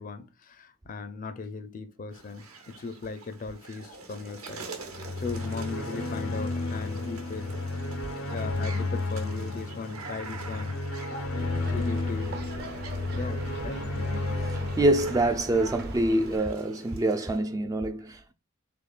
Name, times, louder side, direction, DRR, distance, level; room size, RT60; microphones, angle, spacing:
voice 1, 0.0-4.7 4.9-7.6 8.3-10.7 11.6-12.4 13.2-13.9, left 4 dB, 40° left, 0.5 m, -38 dB
sound 1, 2.1-17.4, right 3 dB, 80° right, 1.1 m, -45 dB
sound 2, 4.9-16.2, left 2 dB, 85° left, 0.7 m, -33 dB
sound 3, 11.4-16.4, right 2 dB, 50° right, 0.8 m, -40 dB
voice 2, 14.8-18.3, right 1 dB, 15° right, 0.3 m, -25 dB
3.6 x 3.5 x 2.3 m
head